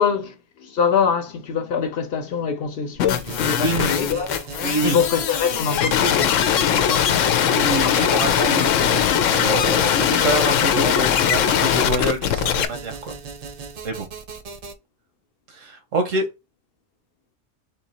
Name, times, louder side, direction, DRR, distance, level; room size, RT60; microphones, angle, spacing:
voice 1, 0.0-4.5 4.8-7.3, left 6 dB, 55° left, 0.9 m, -24 dB
sound 1, 3.0-12.7, left 9 dB, 90° left, 1.0 m, -20 dB
sound 2, 3.1-14.7, right 5 dB, 50° right, 0.4 m, -38 dB
voice 2, 3.5-4.0 4.6-5.0 7.5-9.1 9.4-13.2 13.8-14.1 15.5-16.3, right 2 dB, 90° right, 1.4 m, -26 dB
3.7 x 2.9 x 4.2 m
omnidirectional pair, 1.3 m